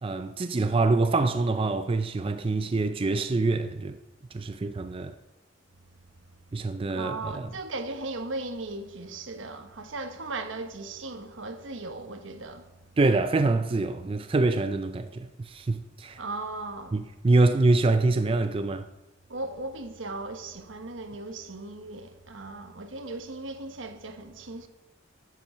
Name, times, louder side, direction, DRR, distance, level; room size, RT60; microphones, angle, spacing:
voice 1, 0.0-4.0 4.3-5.1 6.5-7.5 13.0-16.2 16.9-18.8, right 3 dB, 30° right, 0.4 m, -25 dB
voice 2, 6.9-12.6 16.2-17.0 19.3-24.7, right 2 dB, 75° right, 1.1 m, -37 dB
12.0 x 7.4 x 5.5 m
head